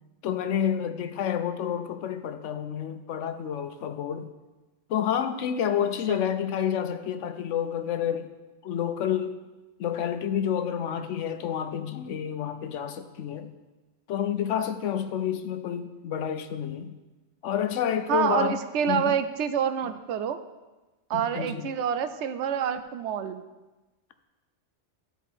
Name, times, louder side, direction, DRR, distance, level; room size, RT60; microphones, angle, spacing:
voice 1, 0.2-4.3 4.9-8.3 8.6-9.4 9.8-13.5 14.1-17.0 17.4-18.6 18.9-19.2 21.1-21.7, left 9 dB, 85° left, 9 dB, 1.0 m, -29 dB
voice 2, 18.1-20.4 21.1-23.4, right 8 dB, 75° right, 10 dB, 0.9 m, -27 dB
13.0 x 4.6 x 4.4 m, 1.2 s
omnidirectional pair, 1.2 m